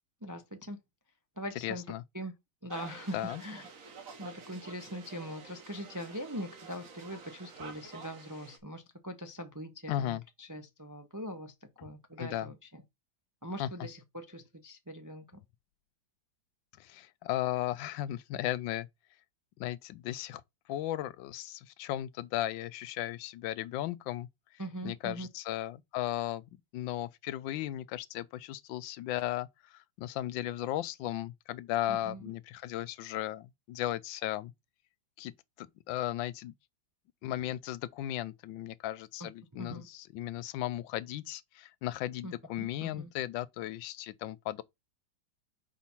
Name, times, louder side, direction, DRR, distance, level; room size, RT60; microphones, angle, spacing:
voice 1, 0.2-0.8 1.4-1.8 2.1-2.3 2.6-3.7 4.2-11.5 11.8-12.8 13.4-15.4 24.6-25.3 31.9-32.2 39.2-39.3 39.6-39.9 42.2-43.1, equal, 25° right, 0.4 m, -42 dB
voice 2, 1.6-2.0 3.1-3.4 9.9-10.2 11.8-11.9 12.2-12.5 13.6-13.7 16.8-18.9 19.6-20.4 20.7-24.3 24.8-26.4 26.7-34.5 35.2-35.3 35.6-36.5 37.2-44.6, left 13 dB, 85° left, 1.3 m, -36 dB
sound 1, 2.7-8.6, right 5 dB, 50° right, 1.5 m, -49 dB
4.9 x 4.5 x 5.6 m
omnidirectional pair, 2.0 m